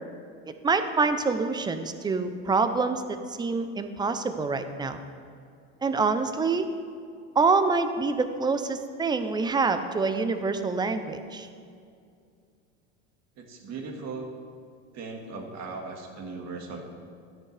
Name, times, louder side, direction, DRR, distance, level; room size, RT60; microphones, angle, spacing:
voice 1, 0.6-5.0 5.8-6.7 7.4-11.5, right 4 dB, 10° right, 9 dB, 0.5 m, -26 dB
voice 2, 13.4-14.3 14.9-16.8, right 4 dB, 45° right, 2 dB, 1.8 m, -38 dB
12.0 x 10.0 x 3.3 m, 2.3 s
supercardioid pair, 120°, 36 cm